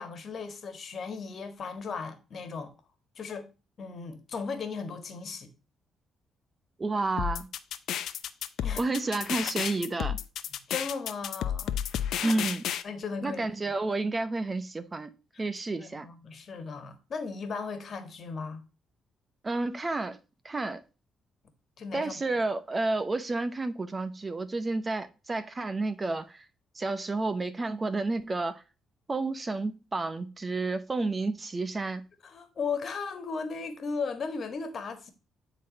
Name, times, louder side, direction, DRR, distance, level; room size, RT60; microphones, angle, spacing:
voice 1, 0.0-2.7 3.2-3.5 3.8-5.5 8.6-8.9 10.5-11.8 12.2-12.4 12.8-13.4 15.3-15.4 15.8-18.6 21.8-22.1 32.2-35.1, left 5 dB, 50° left, 1.6 m, -36 dB
voice 2, 6.8-7.5 8.8-10.2 12.2-12.6 13.2-15.1 15.4-16.1 19.4-20.2 20.4-20.8 21.9-26.4 26.7-28.6 29.1-32.1, right 3 dB, 25° right, 0.8 m, -30 dB
sound 1, 7.2-12.8, left 10 dB, 75° left, 0.6 m, -32 dB
9.3 x 4.0 x 4.0 m
cardioid pair, 90°, 0 cm